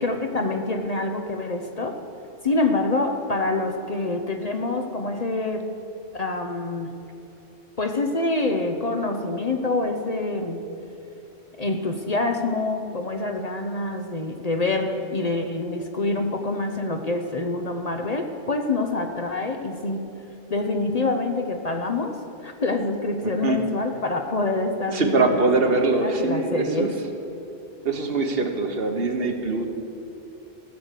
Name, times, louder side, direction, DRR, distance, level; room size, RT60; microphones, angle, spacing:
voice 1, 0.0-2.0 2.4-5.7 6.1-7.0 7.8-10.8 11.6-20.1 20.5-27.0, left 2 dB, 40° left, 4 dB, 0.7 m, -26 dB
voice 2, 23.2-23.6 24.9-26.9 27.8-29.6, right 3 dB, 60° right, 5 dB, 1.2 m, -23 dB
15.5 x 6.4 x 8.2 m, 2.8 s
omnidirectional pair, 1.1 m